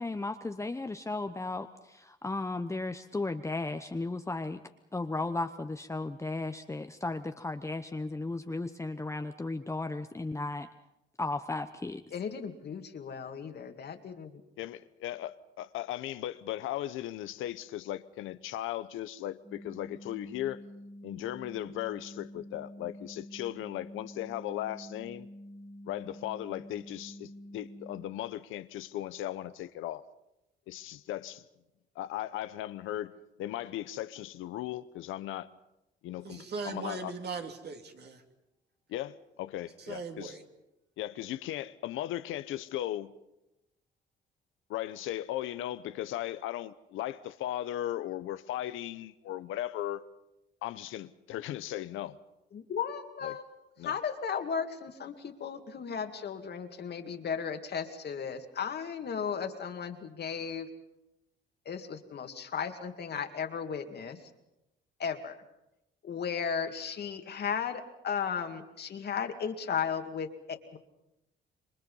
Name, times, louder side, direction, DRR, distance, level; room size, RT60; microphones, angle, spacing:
voice 1, 0.0-4.6 4.9-10.7 11.2-12.0, left 2 dB, 15° left, 0.9 m, -35 dB
voice 2, 12.1-14.4 52.5-53.4 53.8-60.7 61.7-64.2 65.0-65.4 66.0-70.8, left 7 dB, 55° left, 2.3 m, -35 dB
voice 3, 14.6-20.6 21.0-25.3 25.9-30.0 30.7-31.4 32.0-35.5 36.0-37.1 38.9-40.3 41.0-43.1 44.7-50.0 50.6-52.2 53.2-53.4 53.8-53.9, left 13 dB, 90° left, 0.8 m, -37 dB
sound 1, 19.4-28.1, equal, 10° right, 2.7 m, -48 dB
voice 4, 36.2-38.2 39.8-40.4, right 4 dB, 55° right, 2.9 m, -39 dB
28.0 x 23.0 x 5.5 m
cardioid pair, 90°, 20 cm